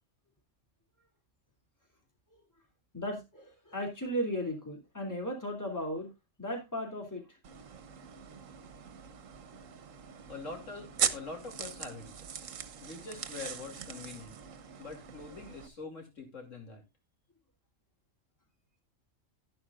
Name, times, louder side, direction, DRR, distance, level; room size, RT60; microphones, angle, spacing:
voice 1, 2.9-6.1 6.4-7.3, equal, 15° left, 2.8 m, -36 dB
sound 1, 7.4-15.7, right 8 dB, 85° right, 1.3 m, -40 dB
voice 2, 10.3-12.1 12.8-14.4 14.8-16.8, left 3 dB, 80° left, 3.2 m, -44 dB
11.5 x 11.5 x 2.4 m
omnidirectional pair, 1.3 m